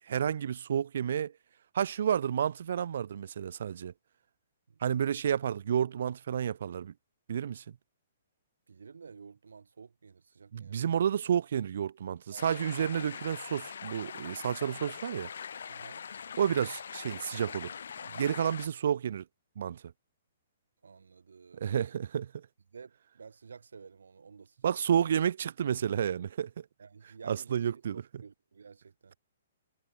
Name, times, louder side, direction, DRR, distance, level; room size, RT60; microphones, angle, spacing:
voice 1, 0.1-1.3 1.7-3.9 4.8-6.9 7.3-7.6 10.5-15.3 16.4-17.7 18.0-19.2 19.6-19.8 21.6-22.5 24.6-26.7 27.3-28.0, right 8 dB, 65° right, 0.4 m, -30 dB
voice 2, 8.7-10.9 12.3-12.5 15.7-16.2 20.8-22.0 22.7-25.1 26.8-29.2, right 5 dB, 85° right, 5.1 m, -52 dB
sound 1, 12.4-18.7, left 7 dB, 75° left, 2.5 m, -42 dB
hypercardioid pair, 145°, 0 cm